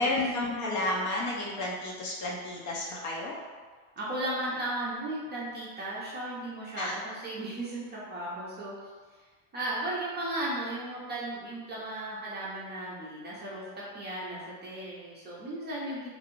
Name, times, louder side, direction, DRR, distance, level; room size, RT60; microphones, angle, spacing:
voice 1, 0.0-3.4 6.8-7.0, left 2 dB, 40° left, -3 dB, 0.5 m, -31 dB
voice 2, 4.0-8.7 9.5-16.1, right 1 dB, 20° right, -6 dB, 0.5 m, -35 dB
2.5 x 2.3 x 3.0 m, 1.5 s
supercardioid pair, 120°, 48 cm